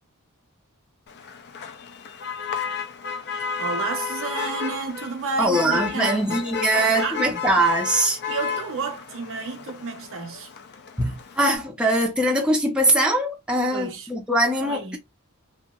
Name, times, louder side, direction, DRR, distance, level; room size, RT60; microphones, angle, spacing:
Motor vehicle (road), 1.1-11.6, left 6 dB, 50° left, 0.4 m, -32 dB
voice 1, 3.6-6.4 6.7-7.4 8.3-10.5 13.7-14.1 14.6-15.0, right 4 dB, 60° right, 0.8 m, -31 dB
voice 2, 5.4-8.2 11.0-15.0, right 1 dB, 5° right, 0.5 m, -22 dB
2.9 x 2.7 x 2.3 m
head